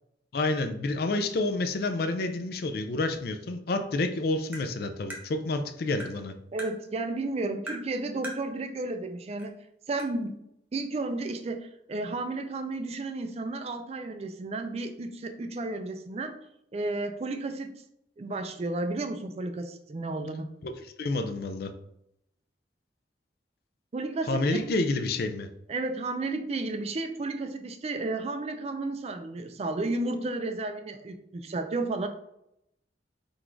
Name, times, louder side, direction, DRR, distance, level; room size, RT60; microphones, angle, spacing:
voice 1, 0.3-6.3 20.6-21.7 24.3-25.5, left 2 dB, 60° left, 8 dB, 0.4 m, -29 dB
Tap, 4.5-4.7 5.1-5.2 6.0-6.2 6.6-6.7 7.7-7.9 8.2-8.4 9.4-9.5 10.0-10.1, right 1 dB, 10° right, 0.8 m, -39 dB
voice 2, 6.5-9.6 9.9-10.4 10.7-16.4 16.7-17.8 18.2-20.5 23.9-24.7 25.7-32.1, right 2 dB, 35° right, 7 dB, 0.4 m, -32 dB
3.9 x 2.5 x 4.4 m, 0.80 s
head